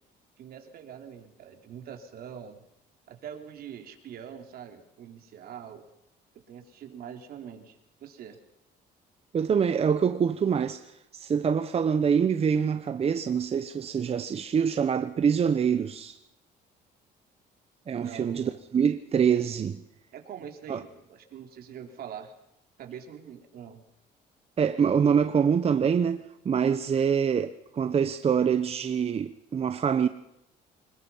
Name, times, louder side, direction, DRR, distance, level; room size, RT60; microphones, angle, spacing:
voice 1, 0.4-2.6 3.1-5.9 6.5-8.4 18.0-18.6 20.1-22.3 22.8-23.8, right 8 dB, 65° right, 3.6 m, -44 dB
voice 2, 9.3-16.2 17.9-19.8 20.7-20.8 24.6-30.1, right 7 dB, 35° right, 1.0 m, -25 dB
25.5 x 21.5 x 5.7 m
cardioid pair, 110°, 17 cm